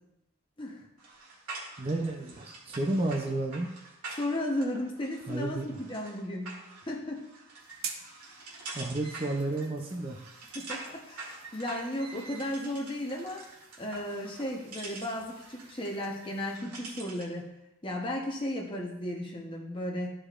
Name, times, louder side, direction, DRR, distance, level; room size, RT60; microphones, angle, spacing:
sound 1, 1.0-17.4, right 3 dB, 90° right, 1.9 m, -46 dB
voice 1, 1.8-3.7 5.3-5.8 8.7-10.2, right 2 dB, 25° right, 1 dB, 0.5 m, -31 dB
voice 2, 4.2-6.5 6.9-7.2 10.5-13.4 13.8-17.5 17.8-20.1, left 1 dB, 20° left, 0 dB, 0.9 m, -34 dB
sound 2, 7.6-16.6, right 6 dB, 65° right, 0.8 m, -49 dB
13.0 x 5.0 x 2.5 m, 0.89 s
head